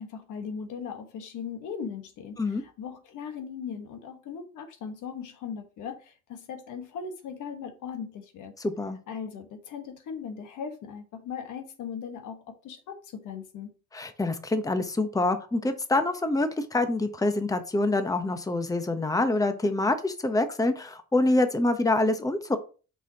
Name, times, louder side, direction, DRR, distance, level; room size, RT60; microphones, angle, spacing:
voice 1, 0.0-8.5 9.1-13.7, left 6 dB, 85° left, 1.4 m, -38 dB
voice 2, 8.6-9.0 13.9-22.6, left 2 dB, 10° left, 0.9 m, -26 dB
6.0 x 5.4 x 2.9 m
cardioid pair, 90°, 30 cm